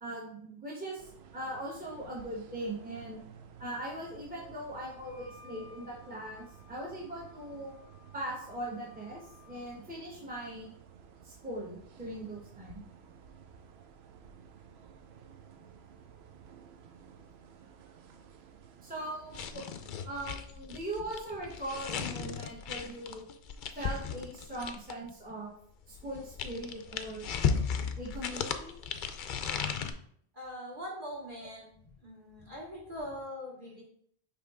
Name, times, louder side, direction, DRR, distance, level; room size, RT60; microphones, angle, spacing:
voice 1, 0.0-3.2 3.6-7.7 8.1-10.7 11.2-12.8 18.8-19.7 20.0-23.2 23.7-25.5 25.9-27.3 28.0-28.7, right 1 dB, 10° right, -5 dB, 1.3 m, -40 dB
sound 1, 1.0-20.1, right 7 dB, 70° right, 0.9 m, -54 dB
Wind instrument woodwind instrument, 4.8-9.8, left 5 dB, 25° right, 2.6 m, -58 dB
sound 2, 19.3-25.1 25.9-29.9, left 6 dB, 55° left, 0.6 m, -35 dB
voice 2, 30.3-31.7 32.0-33.8, equal, 45° right, -6 dB, 2.8 m, -42 dB
5.7 x 3.5 x 4.9 m, 0.64 s
omnidirectional pair, 1.1 m